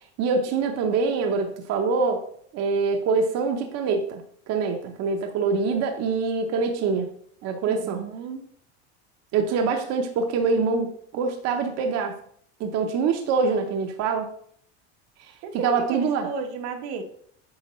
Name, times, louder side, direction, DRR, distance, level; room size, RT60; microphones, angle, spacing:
voice 1, 0.2-2.2 2.5-4.2 4.5-7.1 7.4-8.0 9.3-12.2 12.6-14.3 15.2-15.3 15.6-16.3, right 4 dB, 45° right, 4 dB, 0.9 m, -24 dB
voice 2, 7.7-8.4 9.5-9.7 15.4-17.0, right 5 dB, 70° right, 5 dB, 1.1 m, -34 dB
8.6 x 5.0 x 3.1 m, 0.63 s
supercardioid pair, 140°, 35 cm